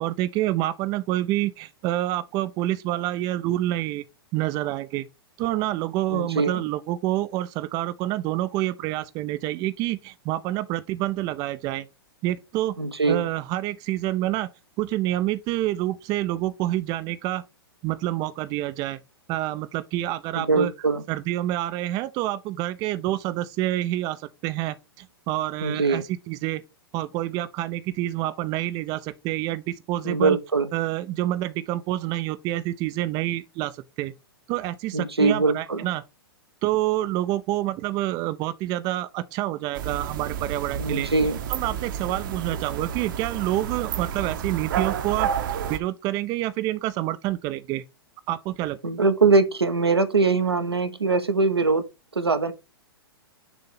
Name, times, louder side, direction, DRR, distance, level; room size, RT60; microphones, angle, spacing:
voice 1, 0.0-4.0 4.3-5.1 5.4-11.9 12.2-12.8 13.1-14.5 14.8-17.4 17.8-19.0 19.3-20.7 21.1-26.6 26.9-30.4 30.7-34.1 34.5-36.0 36.6-41.1 41.5-45.3 45.7-47.8 48.3-48.8, right 15 dB, 30° right, 0.5 m, -27 dB
voice 2, 6.1-6.6 12.8-13.2 20.3-21.0 25.6-26.0 30.0-30.7 34.9-35.9 40.8-41.4 48.8-51.8 52.1-52.5, right 3 dB, 90° right, 0.9 m, -22 dB
sound 1, 39.7-45.8, right 8 dB, 55° right, 0.9 m, -30 dB
6.9 x 2.7 x 5.5 m
figure-of-eight pair, 110°, 13 cm